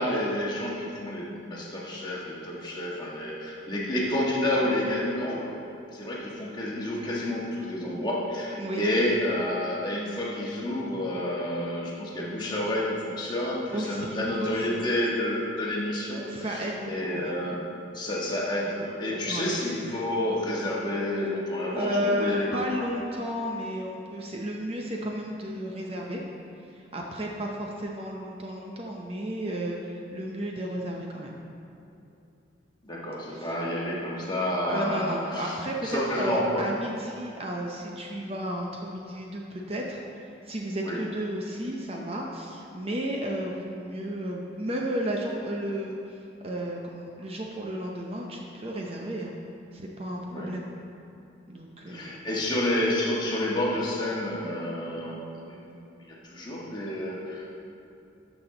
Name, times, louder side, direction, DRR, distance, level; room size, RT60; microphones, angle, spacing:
voice 1, 0.0-5.6 5.9-17.6 17.9-22.5 32.8-35.6 35.8-36.6 40.8-41.0 50.3-50.5 51.9-57.5, left 1 dB, 20° left, -5 dB, 1.5 m, -29 dB
voice 2, 13.7-14.8 16.3-17.3 19.3-19.5 21.7-26.2 26.6-31.3 33.3-33.5 34.7-49.3 49.7-50.6 51.5-52.3, equal, 30° right, -1 dB, 0.7 m, -33 dB
12.5 x 6.2 x 3.9 m, 2.7 s
head